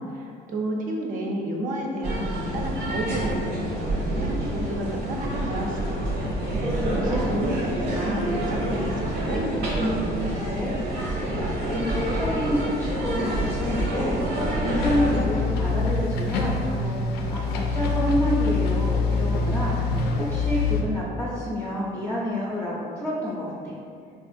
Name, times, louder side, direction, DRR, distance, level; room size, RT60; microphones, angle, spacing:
voice 1, 0.0-6.3 6.9-9.5, right 1 dB, 55° right, 0 dB, 0.5 m, -31 dB
sound 1, 2.0-15.2, right 1 dB, 80° right, 0.9 m, -27 dB
voice 2, 6.7-7.4 10.1-11.3 11.6-23.7, left 1 dB, 15° left, -7 dB, 0.4 m, -29 dB
sound 2, 14.8-20.8, left 3 dB, 75° left, 0.4 m, -25 dB
3.7 x 2.4 x 2.5 m, 2.4 s
cardioid pair, 110°, 17 cm